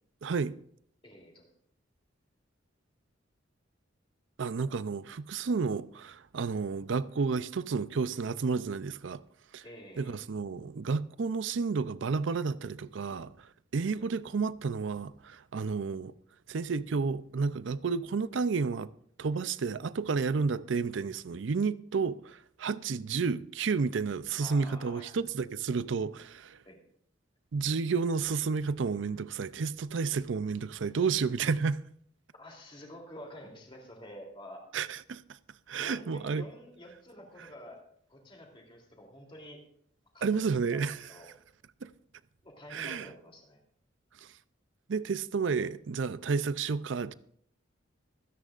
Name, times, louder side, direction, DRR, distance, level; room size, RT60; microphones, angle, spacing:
voice 1, 0.2-0.5 4.4-9.2 9.5-9.6 10.0-16.1 16.5-18.9 19.2-26.6 27.5-31.8 34.7-35.2 35.7-36.4 40.2-41.1 41.8-41.9 42.7-43.1 44.2-44.3 44.9-47.1, right 5 dB, 65° right, 0.5 m, -31 dB
voice 2, 1.0-1.5 4.6-4.7 9.6-10.2 14.0-14.1 24.4-25.2 26.6-26.8 32.4-34.6 35.8-37.8 38.1-39.6 40.1-40.4 40.7-41.3 42.4-43.6, equal, 25° left, 3.1 m, -49 dB
25.0 x 10.0 x 2.5 m
head